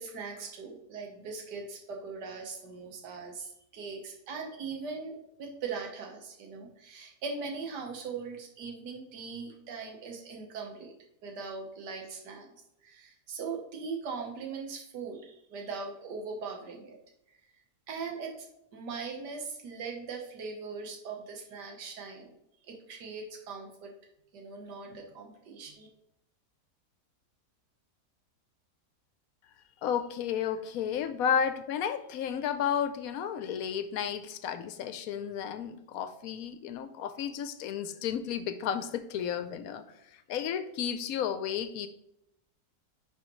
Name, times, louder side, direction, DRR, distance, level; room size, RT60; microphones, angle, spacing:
voice 1, 0.0-10.9 11.2-12.5 12.8-16.9 17.9-18.5 18.7-22.3 22.6-23.9 24.3-25.9, right 4 dB, 85° right, 1 dB, 1.7 m, -40 dB
voice 2, 29.8-39.8 40.3-41.9, left 8 dB, 70° left, 11 dB, 0.9 m, -32 dB
10.0 x 4.9 x 3.1 m, 0.81 s
omnidirectional pair, 1.7 m